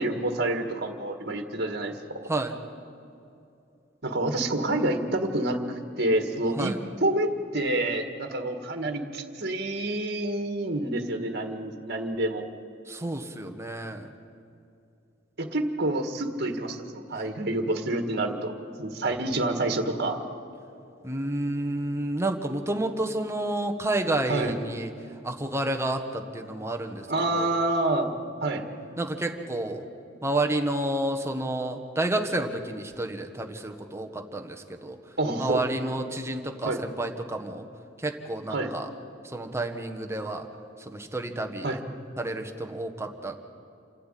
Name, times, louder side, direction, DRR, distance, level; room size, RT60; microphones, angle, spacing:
voice 1, 0.0-2.3 4.0-6.7 7.0-12.5 15.4-18.5 18.8-20.2 24.3-24.5 27.1-28.1 28.4-28.7 35.2-35.6 36.6-36.8 38.5-38.7 41.6-41.8, right 2 dB, 55° right, 5 dB, 1.8 m, -28 dB
voice 2, 2.2-2.6 6.6-6.8 12.9-14.1 21.0-24.9 25.2-27.1 27.3-27.5 29.0-29.8 30.2-35.0 35.4-37.6 38.0-38.9 39.2-40.5 40.8-41.7 42.2-43.3, right 1 dB, 15° right, 4 dB, 1.4 m, -30 dB
28.0 x 12.5 x 9.2 m, 2.6 s
head